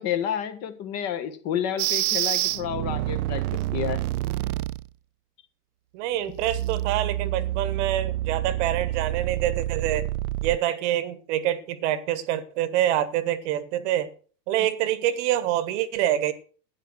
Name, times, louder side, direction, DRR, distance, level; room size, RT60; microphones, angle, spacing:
voice 1, 0.0-4.0, left 9 dB, 30° left, 1.6 m, -30 dB
sound 1, 1.8-4.9 6.3-10.6, right 16 dB, 65° right, 0.5 m, -28 dB
voice 2, 5.9-10.1 10.4-14.1 14.5-16.3, right 12 dB, 45° right, 1.3 m, -26 dB
12.0 x 9.9 x 6.2 m
supercardioid pair, 145°, 49 cm